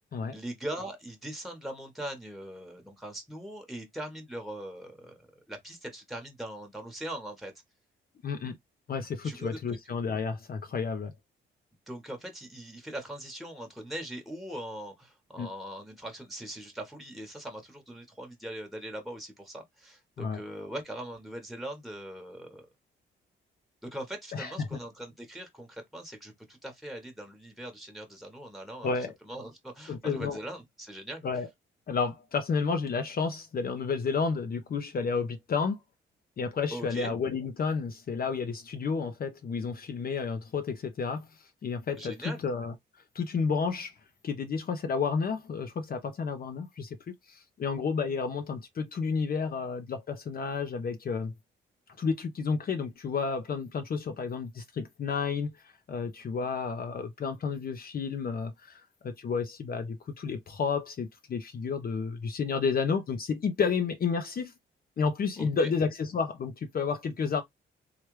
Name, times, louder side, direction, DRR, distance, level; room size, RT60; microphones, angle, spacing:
voice 1, 0.3-7.5 9.2-9.8 11.9-22.7 23.8-31.3 36.7-37.1 42.0-42.4 65.4-65.7, right 1 dB, ahead, 1.2 m, -41 dB
voice 2, 8.2-8.5 8.9-11.1 15.4-15.5 20.2-20.4 24.3-24.8 28.8-29.1 29.9-30.4 31.2-31.5 31.9-35.8 36.4-41.3 41.6-42.7 43.1-43.9 44.2-47.0 47.3-51.3 52.0-55.5 55.9-64.5 65.0-67.4, left 5 dB, 50° left, 0.7 m, -31 dB
3.1 x 2.4 x 3.1 m
cardioid pair, 70°, 20 cm